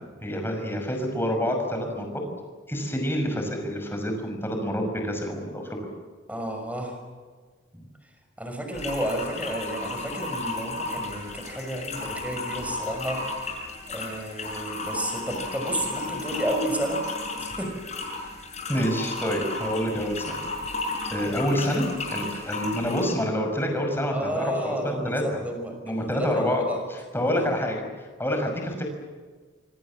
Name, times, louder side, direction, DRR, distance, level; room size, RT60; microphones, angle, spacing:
voice 1, 0.2-2.2 2.7-5.8 18.7-20.4 21.1-25.4 25.9-26.6 26.9-28.8, equal, 10° left, 3 dB, 6.0 m, -27 dB
voice 2, 6.3-7.0 7.7-7.9 8.4-13.2 13.9-17.0 17.4-17.7 24.1-26.8 27.3-27.5, right 1 dB, 5° right, 4 dB, 5.9 m, -31 dB
sound 1, 8.7-23.2, left 2 dB, 35° left, 6.6 m, -34 dB
26.5 x 24.5 x 7.5 m, 1.5 s
head